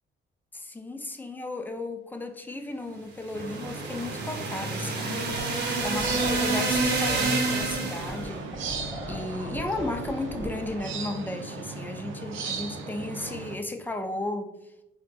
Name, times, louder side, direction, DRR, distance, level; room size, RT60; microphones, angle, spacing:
voice 1, 0.5-5.4 5.8-8.5 9.1-14.5, left 2 dB, 10° left, 5 dB, 0.4 m, -34 dB
sound 1, 3.3-8.2, right 3 dB, 55° right, 0.8 m, -28 dB
sound 2, 3.3-13.6, right 4 dB, 80° right, 0.5 m, -37 dB
sound 3, 5.3-10.8, equal, 15° right, 1.0 m, -39 dB
4.3 x 2.1 x 2.5 m, 0.92 s
cardioid pair, 90°, 20 cm